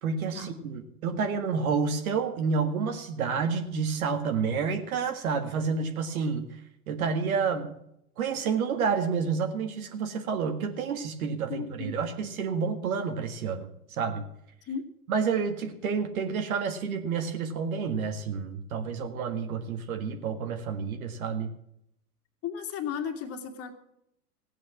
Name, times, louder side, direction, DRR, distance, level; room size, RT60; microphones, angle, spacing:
voice 1, 0.0-6.6 6.9-7.8 8.2-14.3 15.1-21.5, right 5 dB, 65° right, 5 dB, 1.9 m, -29 dB
voice 2, 11.5-11.9 14.7-14.9 22.4-23.8, left 7 dB, 30° left, 5 dB, 2.2 m, -34 dB
16.0 x 8.9 x 7.2 m, 0.76 s
hypercardioid pair, 100°, 46 cm